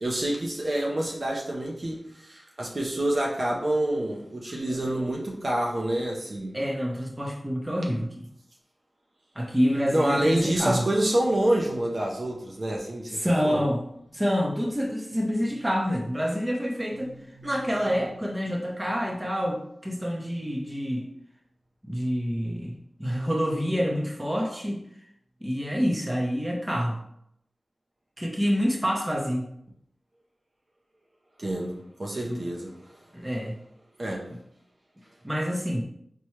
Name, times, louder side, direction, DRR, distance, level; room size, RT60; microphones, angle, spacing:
voice 1, 0.0-6.6 9.9-13.6 17.0-17.5 31.4-32.7 34.0-34.3, right 1 dB, 50° right, -2 dB, 0.6 m, -27 dB
voice 2, 6.5-8.3 9.4-10.8 13.1-13.8 14.1-17.1 17.4-21.1 21.8-22.7 23.0-24.8 25.4-27.0 28.2-29.5 32.2-32.4 33.1-33.5 34.0-34.1 35.2-35.8, equal, 15° right, 0 dB, 0.7 m, -27 dB
4.3 x 2.2 x 3.0 m, 0.73 s
wide cardioid pair, 65°, 0 cm